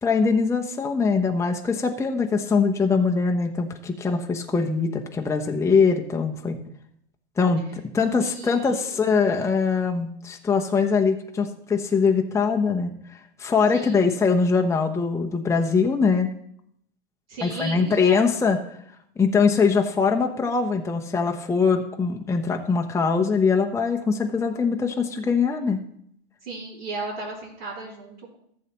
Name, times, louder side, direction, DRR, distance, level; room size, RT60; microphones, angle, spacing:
voice 1, 0.0-6.6 7.4-7.6 7.9-12.9 13.4-16.3 17.4-18.6 19.2-25.8, left 5 dB, 10° left, 2 dB, 0.8 m, -22 dB
voice 2, 8.2-9.0 13.7-14.1 17.3-18.3 26.4-28.4, right 2 dB, 90° right, -9 dB, 3.8 m, -35 dB
14.5 x 7.5 x 3.0 m, 0.71 s
hypercardioid pair, 105°, 29 cm